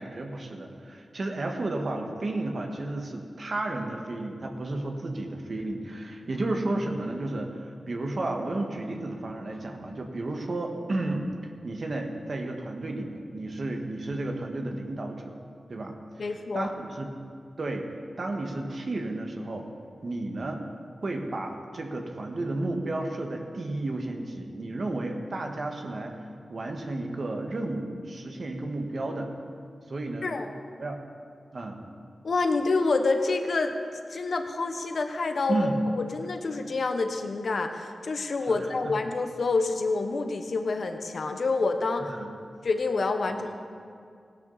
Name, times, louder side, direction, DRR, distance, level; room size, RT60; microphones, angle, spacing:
voice 1, 0.0-15.3 15.7-16.3 16.5-17.1 17.6-17.9 18.2-19.7 20.0-20.6 21.0-26.1 26.5-29.3 29.9-30.4 30.8-31.0 31.5-31.8 35.5-35.8 38.5-38.6 38.8-38.9 42.1-42.3 43.3-43.4, right 2 dB, 55° right, 2 dB, 1.5 m, -32 dB
voice 2, 16.2-16.7 30.2-30.5 32.2-33.8 34.1-35.7 36.0-42.1 42.6-43.5, left 3 dB, 65° left, 6 dB, 1.1 m, -27 dB
17.5 x 11.5 x 4.1 m, 2.3 s
wide cardioid pair, 70°, 0 cm